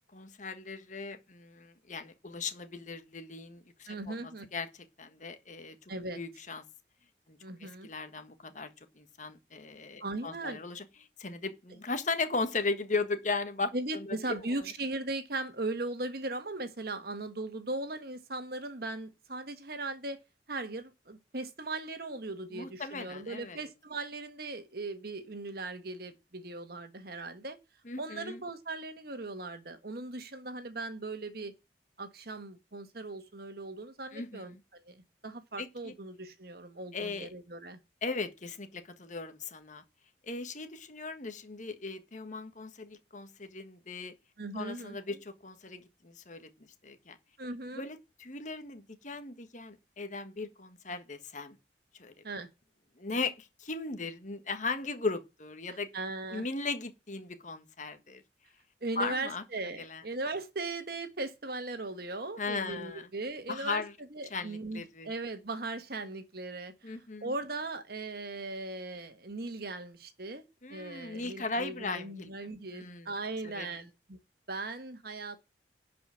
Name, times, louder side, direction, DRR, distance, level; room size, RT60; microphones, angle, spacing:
voice 1, 0.1-4.2 4.5-4.7 5.0-5.8 6.1-6.6 7.3-8.7 9.0-10.8 11.2-14.7 22.5-23.6 27.8-28.4 34.1-34.5 35.6-35.9 36.9-37.3 38.0-39.8 40.3-44.1 44.5-46.5 46.8-47.2 47.7-51.6 52.0-52.1 53.0-55.9 56.3-58.2 59.0-59.4 59.8-60.0 62.4-63.1 63.5-63.9 64.3-65.1 66.8-67.3 70.6-72.3 72.7-73.1 73.4-73.7, left 3 dB, 45° left, 1.5 m, -37 dB
voice 2, 3.9-4.5 5.9-6.2 7.4-7.9 10.0-10.6 13.7-20.2 20.5-27.6 28.0-31.5 32.0-37.8 44.4-45.2 47.4-47.8 52.2-52.5 55.9-56.4 58.8-63.8 64.1-70.4 70.7-74.2 74.5-75.4, right 2 dB, 60° right, 1.5 m, -38 dB
11.0 x 5.1 x 7.2 m
head